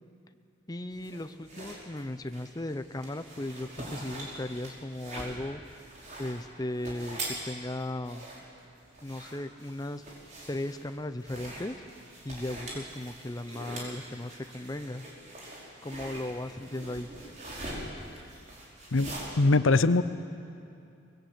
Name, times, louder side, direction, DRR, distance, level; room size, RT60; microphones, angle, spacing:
voice 1, 0.7-5.8 6.2-8.3 9.0-10.0 10.5-11.8 12.2-15.0 15.8-17.1, left 1 dB, 20° left, 10 dB, 0.6 m, -36 dB
sound 1, 0.9-19.3, right 1 dB, 40° right, 4.9 m, -43 dB
voice 2, 18.9-20.0, left 3 dB, 85° left, 14 dB, 0.7 m, -22 dB
24.0 x 20.5 x 7.9 m, 2.6 s
head